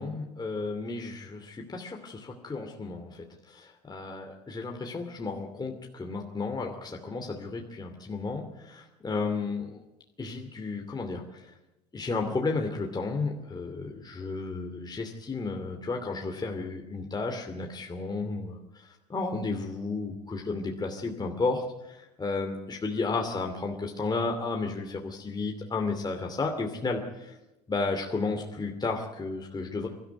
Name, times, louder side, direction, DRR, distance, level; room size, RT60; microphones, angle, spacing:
voice 1, 0.0-9.8 10.2-11.5 11.9-27.4 27.7-29.9, left 3 dB, 20° left, 2 dB, 2.7 m, -33 dB
22.5 x 13.5 x 9.5 m, 1.0 s
hypercardioid pair, 75°, 20 cm